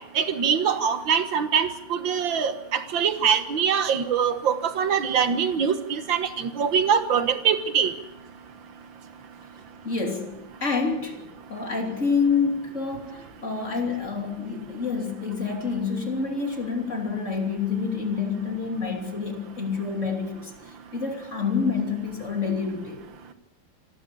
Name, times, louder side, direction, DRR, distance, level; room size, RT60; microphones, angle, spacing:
voice 1, 0.2-7.9, right 7 dB, 85° right, 10 dB, 2.1 m, -23 dB
voice 2, 9.8-10.3 10.6-11.2 11.5-23.1, left 5 dB, 40° left, 3 dB, 3.4 m, -28 dB
27.0 x 13.0 x 8.4 m, 0.87 s
omnidirectional pair, 2.0 m